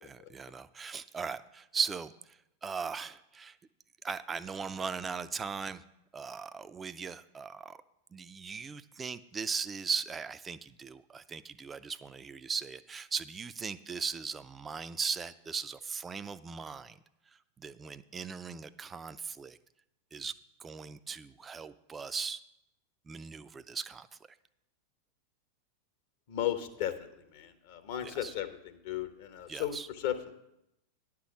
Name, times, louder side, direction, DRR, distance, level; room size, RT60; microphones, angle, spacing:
voice 1, 0.0-3.6 4.0-5.8 6.1-7.8 8.1-17.0 17.6-19.6 20.1-20.3 20.6-22.4 23.1-24.1 28.0-28.3 29.5-29.9, right 5 dB, 15° right, 13 dB, 0.4 m, -38 dB
voice 2, 26.3-26.9 27.3-29.8 30.0-30.3, left 11 dB, 50° left, 10 dB, 0.9 m, -35 dB
10.0 x 6.0 x 7.2 m, 0.83 s
figure-of-eight pair, 90°, 0 cm